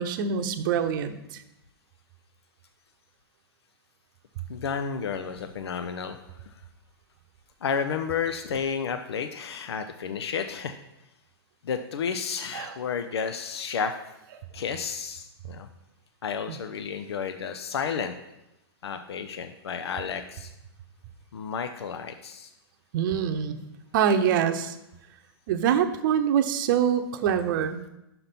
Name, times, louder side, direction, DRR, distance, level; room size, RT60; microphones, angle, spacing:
voice 1, 0.0-1.4 12.5-12.7 16.5-16.6 22.9-23.6 23.9-24.8 25.5-27.8, right 8 dB, 55° right, 9 dB, 0.8 m, -25 dB
voice 2, 4.5-6.2 7.6-10.8 11.6-14.0 14.5-15.7 16.2-18.2 18.8-20.5 21.3-22.5, left 6 dB, 80° left, 7 dB, 0.6 m, -31 dB
5.9 x 5.8 x 5.2 m, 0.89 s
hypercardioid pair, 125°, 13 cm